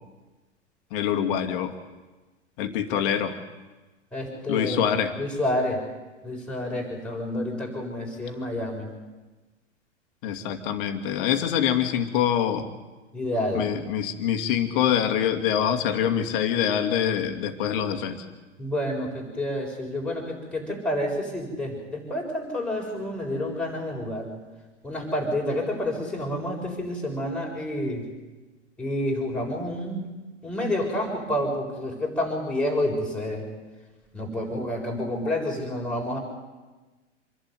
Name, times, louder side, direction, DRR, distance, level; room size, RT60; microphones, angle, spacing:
voice 1, 0.9-1.7 2.6-3.4 4.5-5.1 10.2-12.7 13.5-18.2, left 9 dB, 50° left, 7 dB, 2.5 m, -25 dB
voice 2, 4.1-5.8 6.2-8.9 13.1-13.7 14.8-14.9 18.6-24.3 24.8-28.1 28.8-30.0 30.4-33.5 34.1-36.2, left 1 dB, 5° left, -2 dB, 7.0 m, -29 dB
27.0 x 11.5 x 9.9 m, 1.2 s
hypercardioid pair, 110°, 36 cm